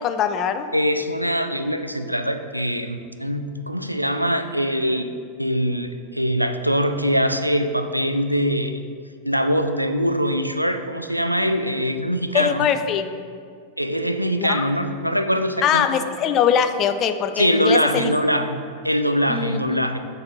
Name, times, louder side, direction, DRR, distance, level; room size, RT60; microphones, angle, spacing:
voice 1, 0.0-0.7 12.3-13.1 14.4-14.6 15.6-18.2 19.3-19.6, left 8 dB, 35° left, 9 dB, 0.4 m, -22 dB
voice 2, 0.7-5.1 5.4-8.8 9.2-12.7 13.8-15.9 17.4-20.0, equal, 90° right, 8 dB, 0.3 m, -23 dB
6.7 x 4.0 x 5.3 m, 2.2 s
figure-of-eight pair, 90°, 0 cm